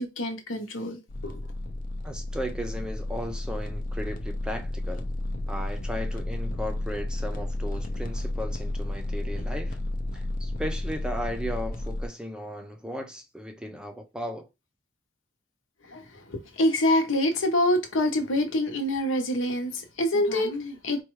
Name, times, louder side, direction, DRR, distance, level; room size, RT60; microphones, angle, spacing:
voice 1, 0.0-1.4 15.8-21.0, left 1 dB, 75° left, 0.9 m, -26 dB
sound 1, 1.1-12.1, left 1 dB, 45° left, 0.6 m, -32 dB
voice 2, 2.0-5.0 5.5-9.8 10.1-14.5, equal, 5° right, 0.4 m, -36 dB
4.4 x 2.3 x 3.1 m
head